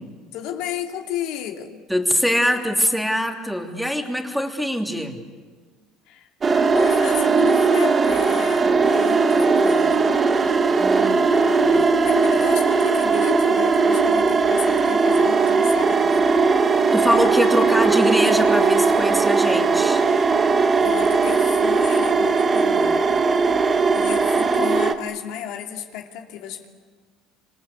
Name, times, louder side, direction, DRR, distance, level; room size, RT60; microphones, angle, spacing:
voice 1, 0.3-1.8 6.1-6.3 6.7-10.2 11.3-16.4 20.8-23.1 23.9-26.7, left 9 dB, 75° left, 3 dB, 2.9 m, -33 dB
voice 2, 1.9-5.2 10.8-11.3 16.9-20.0, equal, ahead, 3 dB, 2.9 m, -23 dB
sound 1, 6.4-24.9, right 4 dB, 25° right, 1.5 m, -18 dB
26.5 x 26.5 x 8.4 m, 1.5 s
cardioid pair, 125°, 0 cm